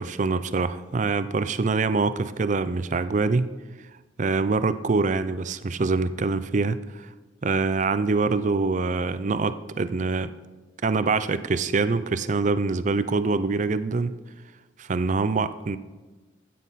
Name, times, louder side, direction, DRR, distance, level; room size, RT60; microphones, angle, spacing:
voice 1, 0.0-3.5 4.2-7.1 7.4-10.3 10.8-14.1 14.8-15.8, right 3 dB, 40° right, 13 dB, 0.4 m, -24 dB
13.5 x 9.3 x 4.1 m, 1.2 s
head